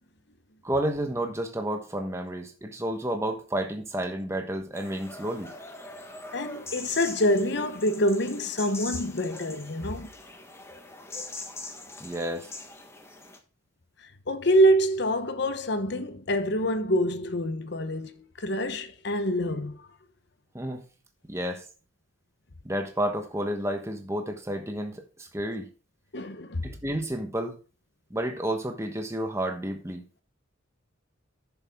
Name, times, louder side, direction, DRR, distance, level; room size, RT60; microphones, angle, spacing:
voice 1, 0.6-5.5 12.0-12.5 20.5-20.8 21.3-21.6 22.6-25.7 26.6-27.6 28.1-30.0, right 1 dB, 15° right, 1.2 m, -31 dB
sound 1, 4.7-13.4, left 2 dB, 15° left, 1.3 m, -42 dB
voice 2, 6.3-10.1 14.3-19.8 26.1-26.7, equal, 60° left, 1.0 m, -26 dB
10.0 x 7.2 x 3.6 m
head